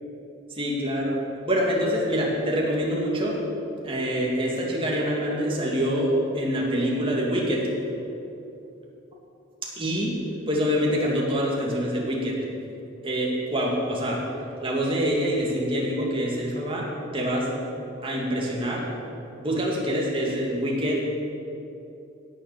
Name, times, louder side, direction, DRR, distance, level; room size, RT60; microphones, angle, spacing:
voice 1, 0.5-1.2 1.4-3.4 3.8-7.7 9.8-10.1 10.5-12.4 13.0-14.2 14.6-17.5 18.0-18.9 19.4-21.0, equal, 25° right, -3 dB, 2.4 m, -25 dB
17.0 x 7.0 x 7.0 m, 2.9 s
head